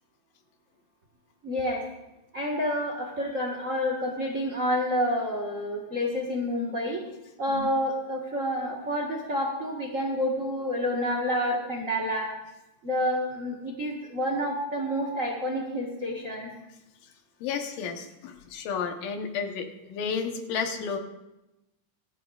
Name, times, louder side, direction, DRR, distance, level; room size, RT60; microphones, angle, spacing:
voice 1, 1.4-1.8 2.3-7.0 7.4-12.3 12.8-16.5, equal, 60° right, -1 dB, 0.8 m, -29 dB
voice 2, 17.4-21.0, left 6 dB, 80° left, 5 dB, 2.7 m, -32 dB
26.5 x 9.2 x 2.4 m, 0.94 s
omnidirectional pair, 3.9 m